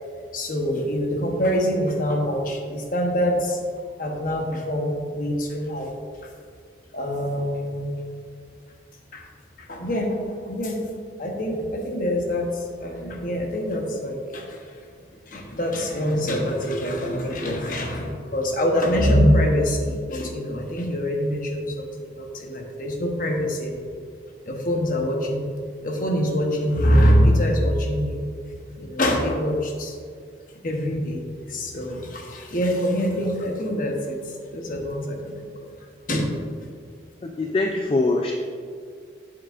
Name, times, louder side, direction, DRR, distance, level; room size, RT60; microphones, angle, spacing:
voice 1, 0.3-3.6 4.0-5.9 6.9-7.9 9.1-9.3 9.6-10.8 11.2-12.5 12.8-14.7 15.3-24.0 24.5-25.5 25.8-28.2 28.8-29.9 30.6-34.2 34.5-35.7 36.1-36.3, equal, 45° left, 1 dB, 0.9 m, -24 dB
voice 2, 37.2-38.3, left 2 dB, 30° left, 2 dB, 0.3 m, -23 dB
7.7 x 7.7 x 2.5 m, 2.2 s
head